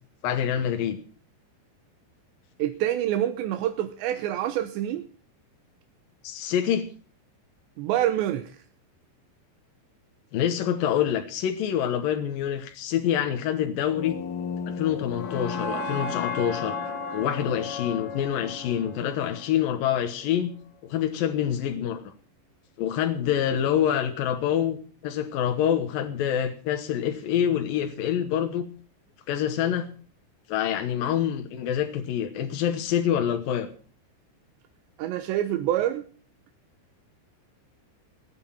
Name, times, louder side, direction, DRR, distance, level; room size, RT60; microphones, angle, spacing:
voice 1, 0.2-1.0 6.2-6.8 10.3-14.2 14.7-16.8 17.1-20.5 20.8-22.1 22.8-24.8 25.0-28.7 29.3-29.9 30.5-33.7, left 9 dB, 70° left, 2.3 m, -26 dB
voice 2, 2.6-5.0 7.8-8.5 35.0-36.0, right 12 dB, 80° right, 3.1 m, -26 dB
sound 1, 13.9-20.0, left 4 dB, 85° left, 4.4 m, -34 dB
20.0 x 9.1 x 5.7 m
omnidirectional pair, 5.4 m